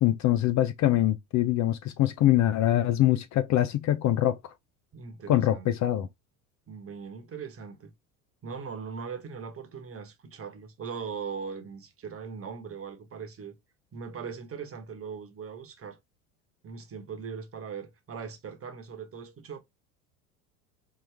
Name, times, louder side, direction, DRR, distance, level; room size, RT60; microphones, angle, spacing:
voice 1, 0.0-4.4 5.3-6.1, left 13 dB, 40° left, 0.6 m, -24 dB
voice 2, 4.9-5.7 6.7-7.9 8.4-13.6 13.9-16.0 16.6-19.6, right 6 dB, 30° right, 1.2 m, -40 dB
4.0 x 3.0 x 3.3 m
hypercardioid pair, 70°, 44 cm